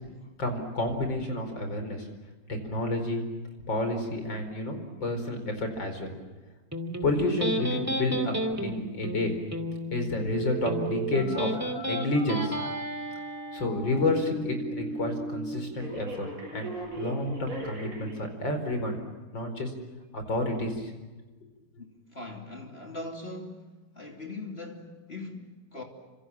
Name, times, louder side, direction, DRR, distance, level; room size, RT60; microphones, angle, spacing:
voice 1, 0.4-2.1 2.6-3.2 3.7-6.1 7.0-9.3 9.9-11.5 11.9-12.6 13.5-16.7 17.0-19.0 19.3-19.7 20.1-20.9, left 2 dB, 90° left, 6 dB, 5.4 m, -30 dB
Electric guitar, 6.7-13.7, equal, 10° right, 2.2 m, -33 dB
Telephone, 10.2-18.2 18.7-18.8, right 3 dB, 45° right, 8.7 m, -37 dB
voice 2, 22.1-23.6 24.0-25.8, left 2 dB, 35° left, 2 dB, 3.1 m, -40 dB
29.5 x 26.0 x 7.5 m, 1.2 s
omnidirectional pair, 2.0 m